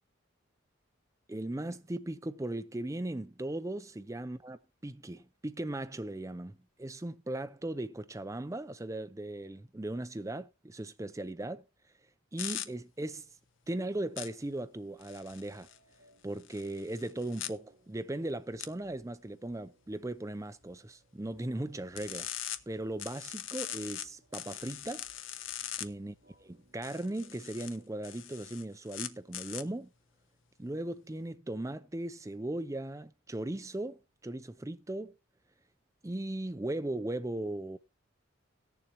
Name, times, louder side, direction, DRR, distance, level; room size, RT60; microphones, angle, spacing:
voice 1, 1.3-4.6 4.8-11.6 12.3-13.3 13.7-15.7 16.2-22.3 22.7-25.1 25.8-26.1 26.7-29.9 30.6-35.1 36.0-37.8, right 1 dB, 15° right, 0.4 m, -38 dB
sound 1, 12.4-12.7 14.2-14.3 15.0-15.8 16.4-17.5 18.6-18.7 22.0-22.6 23.0-24.0 24.3-25.9 26.8-27.8 28.0-29.6, left 12 dB, 65° left, 0.6 m, -41 dB
sound 2, 14.9-27.9, right 1 dB, 45° right, 4.1 m, -66 dB
18.0 x 7.1 x 2.9 m
head